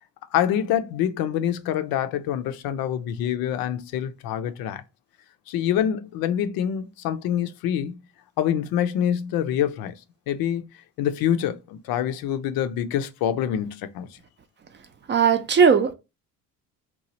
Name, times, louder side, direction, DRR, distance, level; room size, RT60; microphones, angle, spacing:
voice 1, 0.3-4.8 5.5-8.0 8.4-9.9 10.3-10.7 11.0-14.1, left 10 dB, 75° left, 0.5 m, -26 dB
voice 2, 15.1-15.9, right 6 dB, 30° right, 0.5 m, -18 dB
3.0 x 2.3 x 2.7 m
cardioid pair, 100°, 36 cm